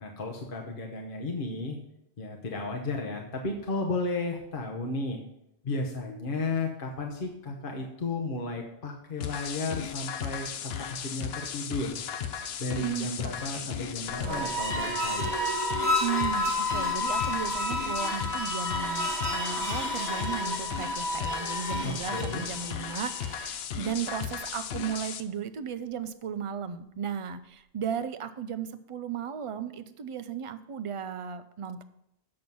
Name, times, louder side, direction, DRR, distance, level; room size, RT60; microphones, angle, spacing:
voice 1, 0.0-1.8 2.2-5.2 5.6-11.9 12.6-15.3 21.8-22.4, left 3 dB, 55° left, 1 dB, 1.1 m, -33 dB
sound 1, 9.2-25.2, left 8 dB, 75° left, 0.8 m, -36 dB
voice 2, 12.8-13.7 16.0-31.8, right 8 dB, 45° right, 11 dB, 0.4 m, -35 dB
sound 2, 14.1-23.5, left 1 dB, 30° right, 1.1 m, -31 dB
7.6 x 6.1 x 5.4 m, 0.80 s
omnidirectional pair, 1.1 m